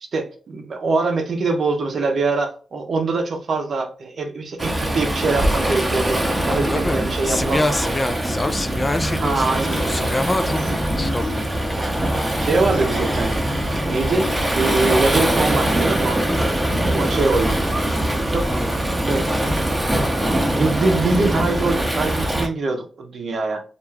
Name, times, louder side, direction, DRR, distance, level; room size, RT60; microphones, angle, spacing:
voice 1, 0.1-7.8 9.2-9.8 10.7-10.8 12.2-13.4 13.8-16.3 16.9-17.6 18.3-18.6 19.0-19.3 20.5-23.6, right 3 dB, 65° right, 0.7 m, -23 dB
Waves surf, 4.6-22.5, right 1 dB, 15° right, 0.8 m, -22 dB
voice 2, 6.5-7.0 7.3-10.6 10.9-11.4 18.4-18.7, left 2 dB, 25° left, 0.4 m, -25 dB
sound 1, 9.0-14.9, left 2 dB, 85° left, 0.6 m, -34 dB
2.5 x 2.3 x 3.1 m
cardioid pair, 60°, 0 cm